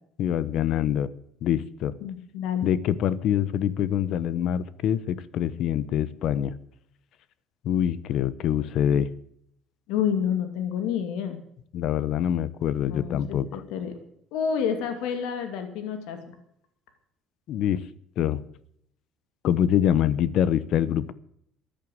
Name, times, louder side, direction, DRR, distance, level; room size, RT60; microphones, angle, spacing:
voice 1, 0.2-1.1 1.4-1.9 2.6-6.5 7.6-9.1 11.7-13.6 17.5-17.8 18.2-18.4 19.4-21.1, left 10 dB, 55° left, 18 dB, 1.0 m, -25 dB
voice 2, 2.0-2.7 9.9-11.4 12.8-13.9 14.3-16.2, left 8 dB, 80° left, 7 dB, 2.6 m, -29 dB
14.5 x 10.5 x 7.9 m, 0.70 s
cardioid pair, 135°, 0 cm